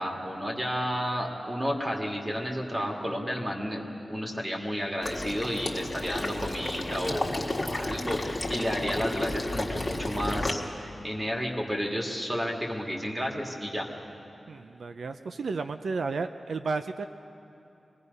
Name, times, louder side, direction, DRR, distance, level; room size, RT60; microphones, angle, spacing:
voice 1, 0.0-13.9, equal, 20° right, 0 dB, 2.2 m, -32 dB
Water / Liquid, 5.0-10.5, left 2 dB, 20° left, 1.7 m, -32 dB
voice 2, 14.5-17.1, right 4 dB, 80° right, 9 dB, 0.5 m, -32 dB
24.5 x 19.5 x 5.5 m, 2.9 s
wide cardioid pair, 135°, 0 cm